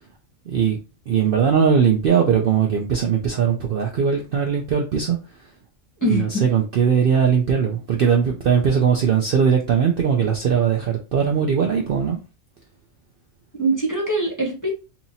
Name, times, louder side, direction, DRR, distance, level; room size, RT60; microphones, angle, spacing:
voice 1, 0.5-0.8 1.1-5.2 6.0-12.2, right 7 dB, 60° right, 0.6 m, -19 dB
voice 2, 6.0-6.4 13.6-14.7, right 1 dB, 15° left, 0.8 m, -22 dB
2.9 x 2.7 x 4.0 m
omnidirectional pair, 1.4 m